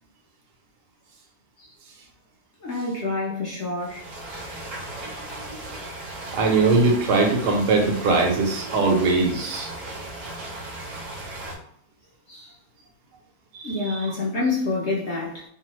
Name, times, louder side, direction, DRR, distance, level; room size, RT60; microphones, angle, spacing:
voice 1, 2.6-4.3 12.3-12.5 13.6-15.4, left 3 dB, 60° left, -5 dB, 0.8 m, -27 dB
sound 1, 3.8-11.6, right 1 dB, 60° right, 0.9 m, -36 dB
voice 2, 6.3-9.7 13.5-14.1, right 3 dB, 85° right, 2 dB, 1.2 m, -21 dB
3.0 x 2.0 x 2.9 m, 0.65 s
omnidirectional pair, 1.8 m